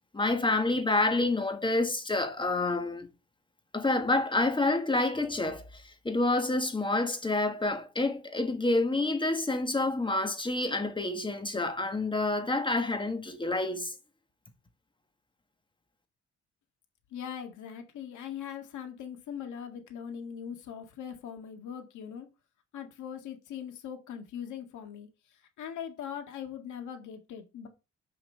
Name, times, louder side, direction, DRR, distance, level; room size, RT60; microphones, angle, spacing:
voice 1, 0.1-3.1 3.7-13.9, left 2 dB, 15° left, 1.6 m, -28 dB
voice 2, 17.1-22.3 22.7-25.1 25.6-27.7, left 8 dB, 75° left, 1.9 m, -41 dB
6.0 x 5.7 x 6.8 m
cardioid pair, 90°, 30 cm